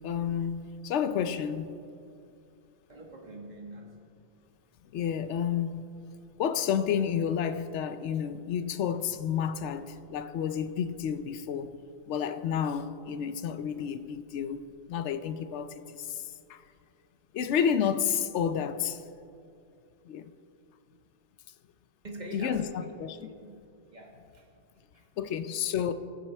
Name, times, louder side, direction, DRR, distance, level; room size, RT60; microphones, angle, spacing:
voice 1, 0.0-1.8 4.9-5.9 6.4-11.8 12.1-16.6 17.3-19.0 20.1-20.3 22.3-23.3 25.2-25.9, left 8 dB, 85° left, 0.9 m, -30 dB
voice 2, 2.9-4.1 22.0-22.8 23.2-23.6 23.8-25.1, equal, 40° right, 1.5 m, -44 dB
19.5 x 7.5 x 3.4 m
omnidirectional pair, 1.1 m